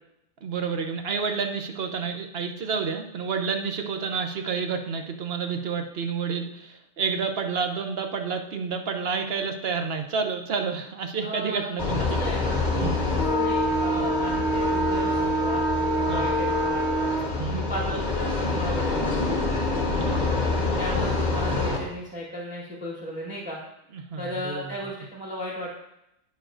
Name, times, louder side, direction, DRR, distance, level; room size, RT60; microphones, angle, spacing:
voice 1, 0.4-12.2 12.8-12.9 16.1-16.3 17.4-17.6 19.9-20.5 23.9-24.8, right 5 dB, 50° right, 5 dB, 0.8 m, -29 dB
voice 2, 11.2-11.7 12.0-12.6 13.1-15.6 16.0-17.1 17.5-19.3 20.5-23.6 24.2-25.7, equal, 5° right, -6 dB, 1.5 m, -35 dB
sound 1, 11.8-21.8, left 1 dB, 30° left, 1.4 m, -25 dB
11.0 x 9.3 x 2.6 m, 0.83 s
omnidirectional pair, 1.8 m